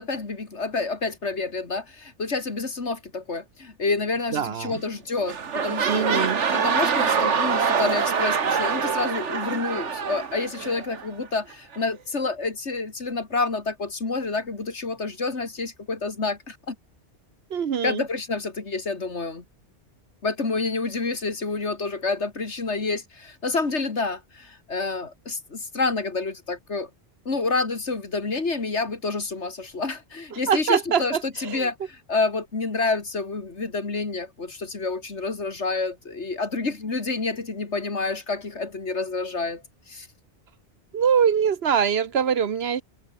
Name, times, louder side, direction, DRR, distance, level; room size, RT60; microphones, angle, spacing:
voice 1, 0.0-16.8 17.8-19.4 20.2-26.9 27.2-40.1, left 3 dB, 80° left, 2.9 m, -28 dB
voice 2, 4.3-4.8 5.9-6.4 17.5-18.0 30.3-31.7 40.9-42.8, right 7 dB, 65° right, 1.1 m, -23 dB
sound 1, 4.7-5.0 5.2-11.1 11.7-11.8, right 6 dB, 85° right, 1.8 m, -25 dB
omnidirectional pair, 1.2 m